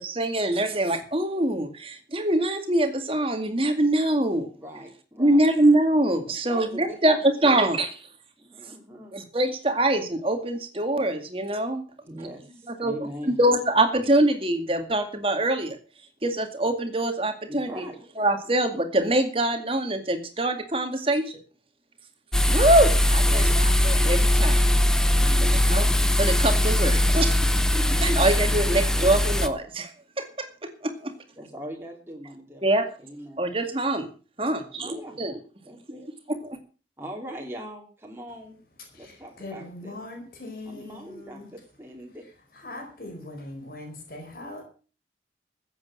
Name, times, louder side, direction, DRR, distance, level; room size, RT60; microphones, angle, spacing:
voice 1, 0.0-4.5 5.2-7.9 9.1-12.3 12.8-12.9 13.3-15.8 16.2-17.9 18.2-21.4 22.5-24.6 25.4-27.3 28.0-29.9 30.2-31.1 32.6-32.9 33.4-34.1 34.4-35.3 36.4-36.6, right 1 dB, 30° right, 7 dB, 2.2 m, -24 dB
voice 2, 4.5-5.4 6.2-7.6 8.4-9.2 12.1-13.4 17.5-18.0 18.4-18.6 23.2-23.5 25.1-25.7 27.5-28.3 28.9-29.1 31.4-32.6 33.0-33.5 34.7-35.2 35.6-36.1 37.0-38.6 39.0-40.0 40.6-42.2, equal, 15° right, -1 dB, 2.9 m, -40 dB
sound 1, 22.3-29.5, left 1 dB, 5° left, 0.8 m, -21 dB
voice 3, 38.9-41.5 42.5-44.6, left 2 dB, 55° left, 2 dB, 4.7 m, -40 dB
15.0 x 8.3 x 7.2 m, 0.38 s
head